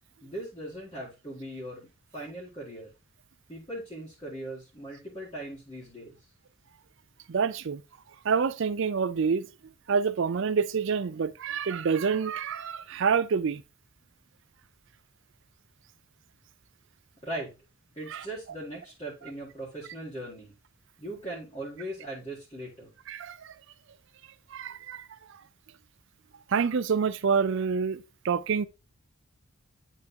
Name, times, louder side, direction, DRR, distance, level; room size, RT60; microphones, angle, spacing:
voice 1, 0.2-1.9 2.1-2.9 3.5-6.2 17.2-17.5 18.0-20.5 21.0-22.9, right 1 dB, 20° left, 1.9 m, -39 dB
voice 2, 7.3-7.8 8.2-9.5 9.9-13.6 18.1-18.2 23.1-23.5 24.5-25.1 26.5-28.7, right 6 dB, 55° right, 0.4 m, -27 dB
9.8 x 3.7 x 2.8 m
head